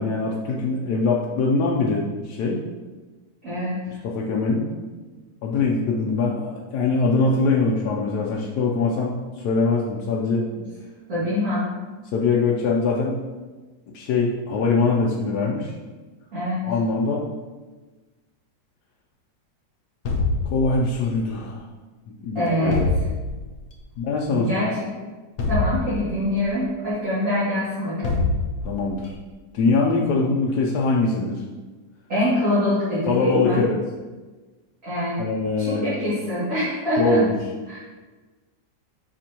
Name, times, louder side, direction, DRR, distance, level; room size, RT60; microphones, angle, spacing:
voice 1, 0.0-2.6 4.0-4.7 5.4-10.4 12.1-13.2 13.9-15.7 16.6-17.2 20.4-21.7 22.1-22.8 24.0-24.6 28.6-29.1 29.5-31.4 33.1-33.8 35.2-35.9 37.0-37.3, left 3 dB, 70° left, -3 dB, 1.2 m, -22 dB
voice 2, 3.4-3.8 10.5-10.6 11.1-11.6 16.3-16.6 22.3-22.8 24.3-24.8 25.5-28.2 32.1-33.6 34.8-35.2 35.6-37.2 37.7-37.8, left 1 dB, 50° right, -13 dB, 2.8 m, -24 dB
sound 1, 20.1-21.2 22.7-23.7 25.4-26.5 28.0-29.0, left 3 dB, 55° left, 0.9 m, -25 dB
7.6 x 5.3 x 2.9 m, 1.3 s
omnidirectional pair, 1.9 m